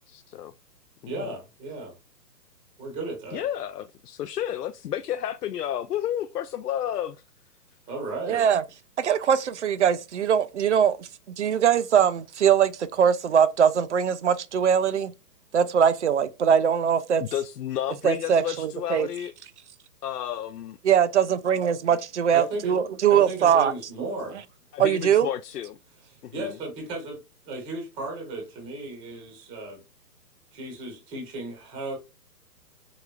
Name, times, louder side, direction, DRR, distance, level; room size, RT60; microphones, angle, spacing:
voice 1, 0.1-0.5 1.0-1.3 3.3-7.2 17.2-19.3 20.0-20.8 24.7-25.8 26.2-26.6, left 11 dB, 70° left, 0.5 m, -31 dB
voice 2, 1.1-2.0 2.8-3.4 7.9-8.4 22.3-22.8 23.1-24.4 26.3-27.2 27.4-29.8 30.5-32.0, right 2 dB, 10° right, 0.9 m, -35 dB
voice 3, 8.3-8.6 9.0-11.1 11.4-15.1 15.5-17.2 18.0-19.1 20.8-23.7 24.8-25.3, right 8 dB, 45° right, 0.5 m, -21 dB
4.8 x 3.6 x 2.4 m
hypercardioid pair, 150°, 49 cm